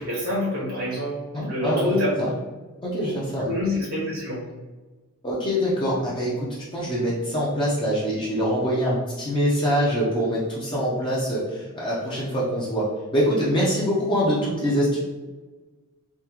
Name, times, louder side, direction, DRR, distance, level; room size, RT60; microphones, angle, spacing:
voice 1, 0.0-2.2 3.0-3.1 3.4-4.4, left 1 dB, 70° right, -6 dB, 1.4 m, -27 dB
voice 2, 1.3-1.9 2.2-2.3 2.8-3.5 5.2-15.0, equal, 20° left, -6 dB, 0.6 m, -24 dB
3.5 x 2.8 x 3.0 m, 1.3 s
head